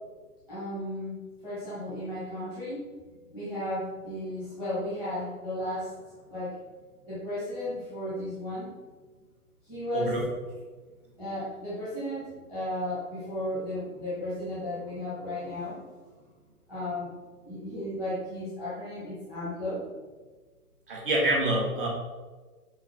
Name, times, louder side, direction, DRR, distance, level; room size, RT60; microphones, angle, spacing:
voice 1, 0.5-2.9 3.3-5.9 6.3-6.6 7.1-8.8 9.6-10.1 11.2-15.8 16.7-17.1 17.4-19.8, left 1 dB, 5° right, -12 dB, 1.6 m, -34 dB
voice 2, 20.9-21.9, right 1 dB, 35° right, -3 dB, 2.1 m, -26 dB
6.4 x 5.8 x 4.3 m, 1.4 s
hypercardioid pair, 175°, 47 cm